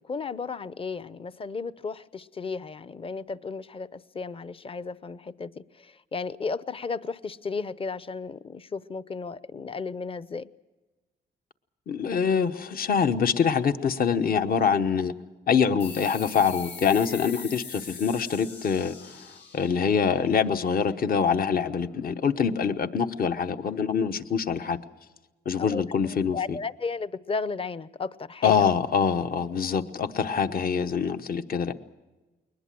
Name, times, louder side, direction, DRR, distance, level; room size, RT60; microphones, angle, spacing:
voice 1, 0.0-10.5 25.6-25.8 26.3-28.6, left 4 dB, 30° left, 16 dB, 0.7 m, -34 dB
voice 2, 11.9-15.1 15.5-19.3 19.5-24.8 25.4-26.6 28.4-31.7, left 6 dB, 55° left, 9 dB, 1.1 m, -25 dB
sound 1, 15.8-21.0, left 5 dB, 85° left, 6.9 m, -43 dB
22.0 x 20.0 x 7.7 m, 1.2 s
cardioid pair, 95°, 18 cm